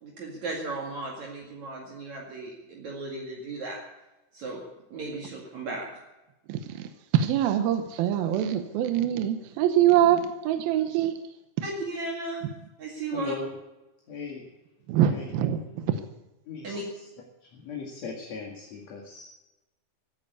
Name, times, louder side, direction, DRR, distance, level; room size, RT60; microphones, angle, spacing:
voice 1, 0.0-3.8 4.3-4.6 4.9-5.9 11.6-12.5 12.8-13.3 16.6-16.8, right 2 dB, 55° right, -1 dB, 3.2 m, -35 dB
voice 2, 6.5-6.8 7.1-11.2 14.9-15.8, right 10 dB, 80° right, 9 dB, 2.7 m, -24 dB
voice 3, 13.1-13.5 14.1-14.5 15.0-15.3 16.5-16.8 17.5-19.3, left 5 dB, 50° left, 0 dB, 3.0 m, -37 dB
16.0 x 10.0 x 8.3 m, 1.0 s
omnidirectional pair, 4.3 m